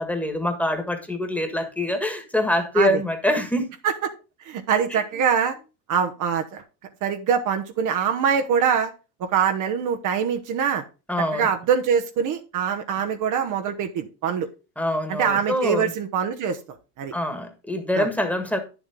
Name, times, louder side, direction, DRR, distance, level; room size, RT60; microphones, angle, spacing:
voice 1, 0.0-3.6 4.9-5.0 11.1-11.5 13.0-13.1 14.8-15.9 17.1-18.6, left 1 dB, 5° left, 6 dB, 1.6 m, -25 dB
voice 2, 4.4-5.5 5.9-6.6 7.0-8.9 9.2-10.8 11.3-14.5 15.2-16.6 17.0-17.1 18.0-18.1, right 7 dB, 45° right, 6 dB, 1.1 m, -23 dB
9.8 x 7.2 x 3.7 m, 0.31 s
supercardioid pair, 130°, 41 cm